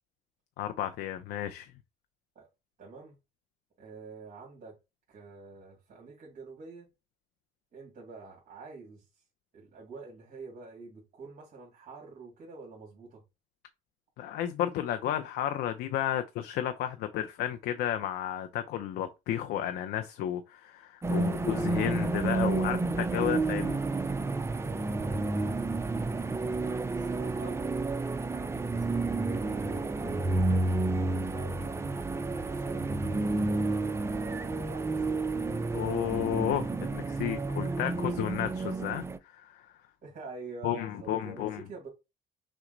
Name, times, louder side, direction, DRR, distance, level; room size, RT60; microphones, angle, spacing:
voice 1, 0.6-1.7 14.2-23.8 35.7-39.0 39.3-39.7 40.6-41.6, left 11 dB, 75° left, 0.5 m, -32 dB
voice 2, 2.8-3.1 3.8-4.8 5.1-6.9 7.7-9.2 9.5-13.2 26.6-27.6 28.3-31.8 32.1-35.2 36.7-37.0 37.8-38.5 40.0-41.9, right 4 dB, 50° right, 2.1 m, -48 dB
sound 1, 21.0-39.2, right 3 dB, 15° right, 0.5 m, -30 dB
6.0 x 2.1 x 3.9 m
cardioid pair, 110°, 17 cm